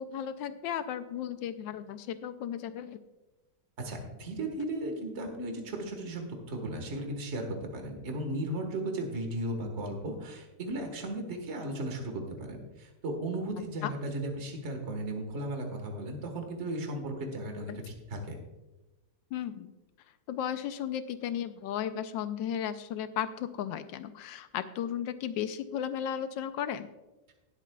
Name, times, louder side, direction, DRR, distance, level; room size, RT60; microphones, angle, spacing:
voice 1, 0.0-3.0 13.8-13.9 17.7-17.8 19.3-19.7 20.3-26.9, left 9 dB, 80° left, 11 dB, 1.3 m, -35 dB
voice 2, 3.8-18.4, right 1 dB, 40° right, 4 dB, 1.6 m, -36 dB
19.0 x 8.2 x 2.3 m, 1.1 s
omnidirectional pair, 2.0 m